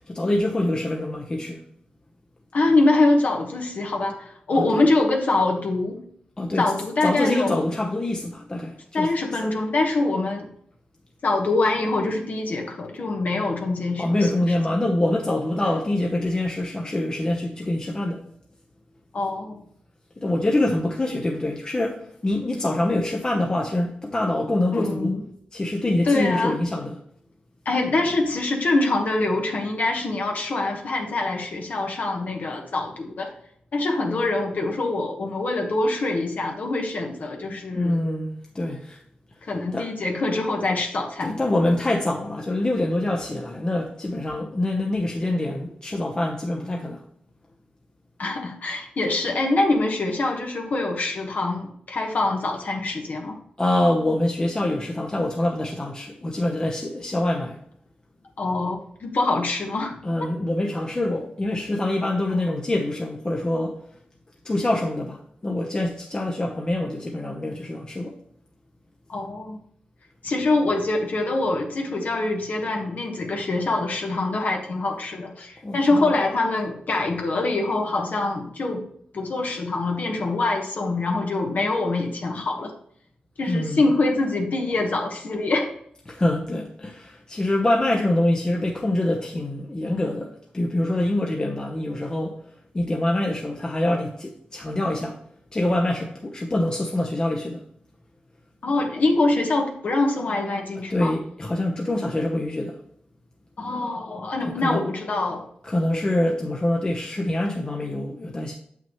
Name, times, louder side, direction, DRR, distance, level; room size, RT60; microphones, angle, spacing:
voice 1, 0.1-1.6 4.5-4.8 6.4-6.6 7.0-9.1 14.0-18.3 20.2-25.1 25.5-27.0 37.5-39.0 39.7-39.9 41.2-47.0 53.6-57.6 60.0-63.8 64.4-68.2 75.6-76.1 83.5-83.8 86.1-92.4 92.7-95.2 95.5-97.6 100.9-102.8 104.4-104.8 105.6-108.5, left 1 dB, 25° left, 0.9 m, -25 dB
voice 2, 2.5-6.0 6.6-7.6 8.9-10.5 11.2-14.3 15.6-15.7 19.1-19.6 24.7-25.2 26.0-26.6 27.6-33.3 33.7-38.0 39.4-41.4 48.2-53.4 58.4-59.9 69.1-69.6 70.2-78.9 79.1-82.7 83.4-85.7 98.6-101.1 103.6-105.5, left 2 dB, 60° left, 1.2 m, -24 dB
7.1 x 5.9 x 3.1 m
wide cardioid pair, 90°, 3 cm